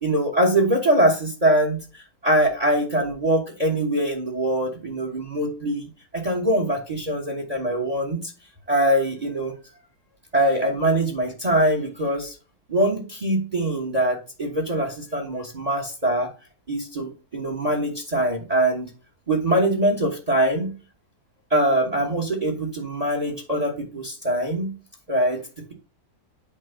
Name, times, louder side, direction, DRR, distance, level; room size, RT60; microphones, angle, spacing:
voice 1, 0.0-5.9 6.1-8.3 8.7-9.5 10.3-12.3 12.7-16.3 16.7-18.9 19.3-20.7 21.5-24.7 25.1-25.4, right 1 dB, 25° right, 1 dB, 1.3 m, -23 dB
8.8 x 3.0 x 5.7 m, 0.34 s
omnidirectional pair, 1.6 m